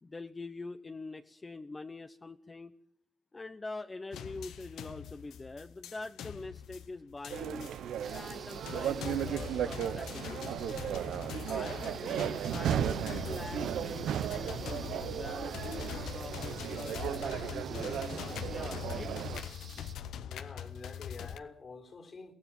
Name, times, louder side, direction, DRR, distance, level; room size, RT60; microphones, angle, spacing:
voice 1, 0.0-2.8 3.3-7.7 8.0-10.5 11.5-19.1, left 3 dB, 35° left, 1.0 m, -45 dB
sound 1, 4.1-21.4, left 9 dB, 80° left, 0.8 m, -43 dB
sound 2, 7.3-19.4, right 9 dB, 80° right, 0.8 m, -35 dB
sound 3, 8.0-19.9, right 6 dB, 60° right, 1.1 m, -52 dB
voice 2, 20.3-22.3, left 4 dB, 55° left, 3.9 m, -47 dB
23.0 x 15.5 x 7.4 m
supercardioid pair, 45°, 0 cm